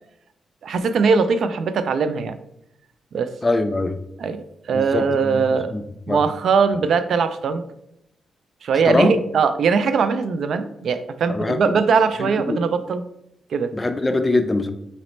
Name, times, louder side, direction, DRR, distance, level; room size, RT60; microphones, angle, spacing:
voice 1, 0.6-2.4 3.1-3.3 4.2-5.7 6.1-7.6 8.6-13.0 13.5-13.7, right 5 dB, 70° right, 11 dB, 0.3 m, -20 dB
voice 2, 3.4-4.0 4.7-5.4 5.7-6.2 8.8-9.1 11.3-11.6 12.2-12.6 13.7-14.7, left 2 dB, 20° left, 8 dB, 0.5 m, -22 dB
4.1 x 4.0 x 3.1 m, 0.80 s
cardioid pair, 70°, 0 cm